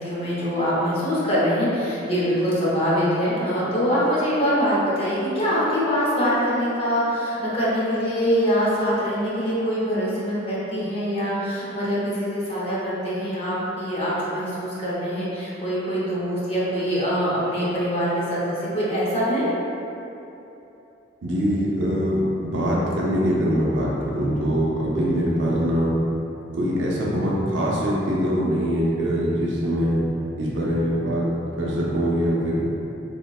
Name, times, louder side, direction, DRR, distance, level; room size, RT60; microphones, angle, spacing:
voice 1, 0.0-19.5, equal, 30° left, -8 dB, 0.7 m, -24 dB
voice 2, 21.2-25.9 26.5-30.0 30.4-31.3 31.6-32.6, equal, 80° right, -5 dB, 0.6 m, -23 dB
3.7 x 2.1 x 2.3 m, 2.9 s
head